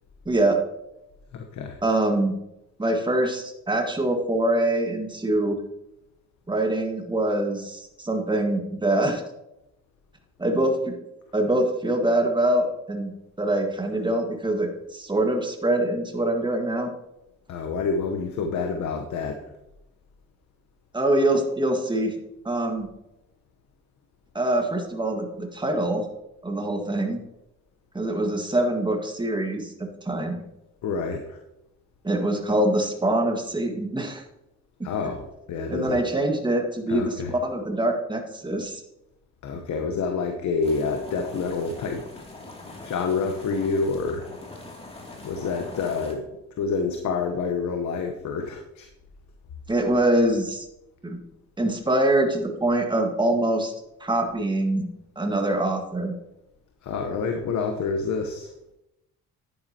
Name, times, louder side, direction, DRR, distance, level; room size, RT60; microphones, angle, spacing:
voice 1, 0.2-0.6 1.8-2.3 2.8-5.6 6.5-9.2 10.4-10.9 11.3-13.1 13.4-16.9 20.9-22.1 22.4-22.9 24.3-26.0 26.4-27.2 27.9-30.4 32.0-34.2 35.7-38.8 49.7-50.7 51.0-51.2 51.6-53.7 54.0-54.9 55.1-56.1, right 1 dB, 15° right, 4 dB, 1.7 m, -24 dB
voice 2, 1.3-1.8 17.5-19.4 30.8-31.4 34.8-36.0 36.9-37.3 39.4-42.0 42.8-44.2 45.1-46.3 46.6-48.9 56.8-58.5, left 4 dB, 70° left, 4 dB, 1.1 m, -28 dB
sound 1, 40.6-46.1, left 2 dB, 20° left, 2.7 m, -42 dB
10.5 x 9.5 x 2.9 m, 0.88 s
cardioid pair, 90°, 30 cm